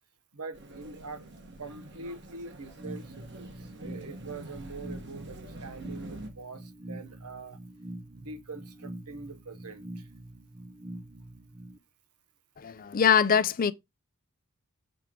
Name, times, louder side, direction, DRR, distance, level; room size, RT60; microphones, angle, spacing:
voice 1, 0.3-1.2 1.6-7.6 8.2-10.0, right 3 dB, 80° right, 1.1 m, -43 dB
sound 1, 0.5-6.3, right 1 dB, 50° right, 1.4 m, -46 dB
sound 2, 2.8-11.8, right 1 dB, 20° right, 0.5 m, -45 dB
voice 2, 12.6-13.7, left 7 dB, 40° left, 0.4 m, -23 dB
7.0 x 3.7 x 4.5 m
head